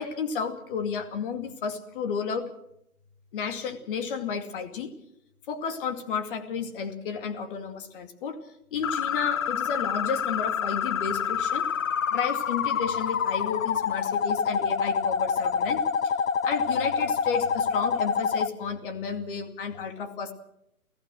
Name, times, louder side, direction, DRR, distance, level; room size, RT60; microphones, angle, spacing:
voice 1, 0.0-2.5 3.3-4.9 5.5-8.4 8.7-11.7 12.1-15.8 16.4-20.3, left 6 dB, 35° left, 8 dB, 2.5 m, -32 dB
sound 1, 8.8-18.5, left 7 dB, 60° left, 0.9 m, -27 dB
28.5 x 16.0 x 6.3 m, 0.80 s
figure-of-eight pair, 130°, 45 cm